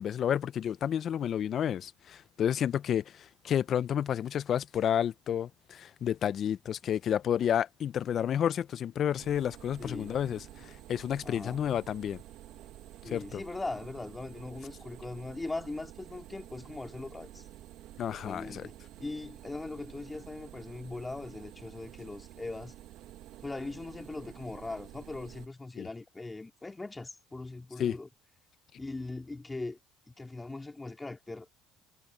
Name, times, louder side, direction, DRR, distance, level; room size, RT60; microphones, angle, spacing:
voice 1, 0.0-12.2 13.1-13.4 18.0-18.7 25.8-25.9 27.8-28.0, left 9 dB, 45° left, 0.7 m, -30 dB
sound 1, 9.2-25.5, right 14 dB, 65° right, 1.8 m, -50 dB
voice 2, 9.8-10.1 11.2-11.6 13.0-17.5 18.2-18.7 19.0-22.7 23.4-28.1 28.8-29.8 30.1-31.5, left 2 dB, 15° left, 2.5 m, -40 dB
supercardioid pair, 100°, 0 cm